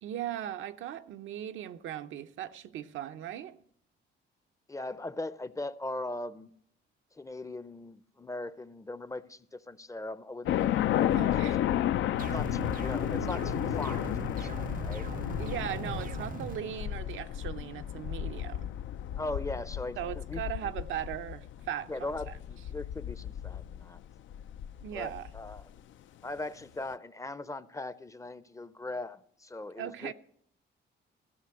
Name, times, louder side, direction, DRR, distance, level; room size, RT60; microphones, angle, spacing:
voice 1, 0.0-3.6 11.2-11.7 15.4-18.7 20.0-22.1 24.8-25.3 29.8-30.1, right 10 dB, 75° right, 0.7 m, -38 dB
voice 2, 4.7-6.5 7.1-11.5 12.3-15.1 19.2-20.4 21.9-24.0 24.9-25.7 26.2-30.1, left 2 dB, 15° left, 0.6 m, -40 dB
sound 1, 10.4-25.6, left 11 dB, 75° left, 0.5 m, -33 dB
sound 2, 12.2-16.6, right 8 dB, 45° right, 0.5 m, -40 dB
14.5 x 6.0 x 7.7 m
cardioid pair, 90°, 20 cm